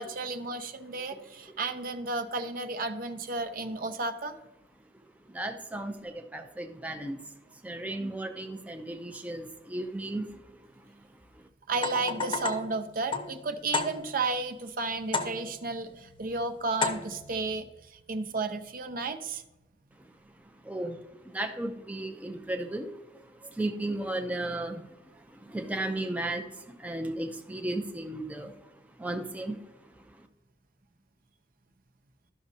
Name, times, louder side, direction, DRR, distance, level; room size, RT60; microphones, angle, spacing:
voice 1, 0.0-4.4 8.0-8.1 11.7-19.4, right 3 dB, 50° right, 8 dB, 0.6 m, -33 dB
voice 2, 4.9-7.2 7.6-11.0 11.3-11.4 20.0-20.1 20.4-30.3, right 1 dB, 10° right, 5 dB, 0.5 m, -36 dB
sound 1, 11.7-14.4 15.1-15.7 16.8-17.4, left 4 dB, 30° left, 0.8 m, -33 dB
13.0 x 6.0 x 2.7 m, 0.99 s
head